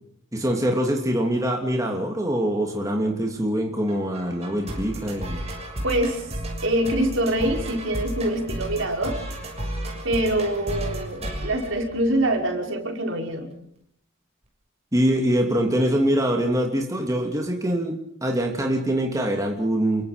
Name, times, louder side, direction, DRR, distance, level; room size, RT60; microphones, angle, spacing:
voice 1, 0.3-5.4 14.9-17.9 18.2-20.0, right 1 dB, 15° right, 1 dB, 2.9 m, -24 dB
sound 1, 3.9-12.5, right 1 dB, 30° right, 6.8 m, -33 dB
voice 2, 5.8-6.3 6.6-9.2 10.0-13.5, right 1 dB, 65° right, 2 dB, 5.4 m, -24 dB
28.5 x 24.0 x 5.2 m, 0.69 s
head